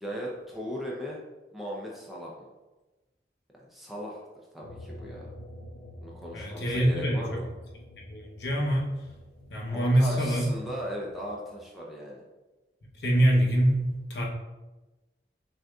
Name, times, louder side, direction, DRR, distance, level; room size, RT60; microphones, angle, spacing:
voice 1, 0.0-1.2 1.5-2.5 3.5-4.2 4.5-5.3 6.0-7.5 9.7-12.2, equal, ahead, -4 dB, 0.6 m, -37 dB
sound 1, 4.6-11.5, left 1 dB, 55° left, 0.4 m, -47 dB
voice 2, 6.3-7.2 8.1-8.9 9.5-10.5 13.0-14.2, right 1 dB, 80° left, -2 dB, 0.8 m, -24 dB
6.1 x 2.6 x 2.3 m, 1.1 s
head